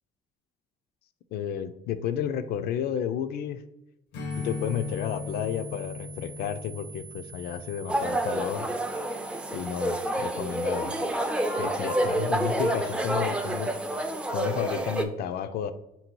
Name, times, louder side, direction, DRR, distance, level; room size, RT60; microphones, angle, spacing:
voice 1, 1.3-3.6 4.4-8.7 9.5-10.9 11.6-13.7 14.3-15.7, left 9 dB, 70° left, 11 dB, 0.4 m, -32 dB
Strum, 4.1-8.9, left 4 dB, 90° left, 0.7 m, -39 dB
sound 1, 4.3-14.3, right 7 dB, 70° right, 0.5 m, -47 dB
sound 2, 7.9-15.0, right 1 dB, 5° right, 0.4 m, -28 dB
3.7 x 2.7 x 4.4 m, 0.89 s
cardioid pair, 110°, 17 cm